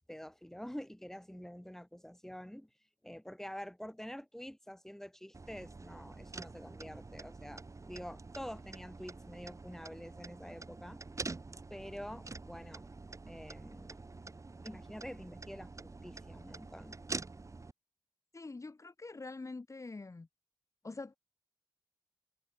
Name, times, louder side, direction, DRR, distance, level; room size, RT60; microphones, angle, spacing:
voice 1, 0.1-2.7 3.0-11.0 11.7-12.8 13.3-14.0 14.6-17.0, equal, 5° left, 6.3 m, -47 dB
sound 1, 5.3-17.7, right 3 dB, 35° right, 2.0 m, -47 dB
voice 2, 18.3-20.3 20.8-21.2, left 3 dB, 40° left, 3.1 m, -45 dB
cardioid pair, 70°, 9 cm